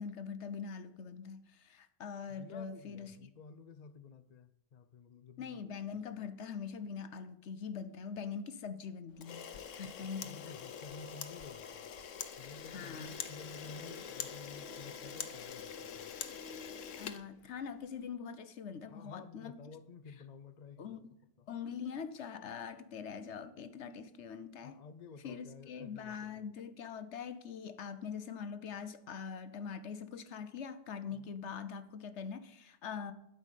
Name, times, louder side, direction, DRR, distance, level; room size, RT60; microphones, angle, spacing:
voice 1, 0.0-3.2 5.4-9.4 9.8-10.5 12.7-13.1 17.0-19.6 20.8-21.1 21.5-24.8 25.2-33.1, left 6 dB, 70° left, 1.1 m, -43 dB
voice 2, 2.3-5.6 5.9-6.0 9.8-11.9 12.4-16.2 18.8-21.0 21.4-21.5 24.6-26.5 31.1-31.3, left 5 dB, 45° left, 0.6 m, -52 dB
Camera, 9.2-17.9, left 7 dB, 90° left, 1.2 m, -45 dB
12.0 x 5.4 x 8.2 m
omnidirectional pair, 1.3 m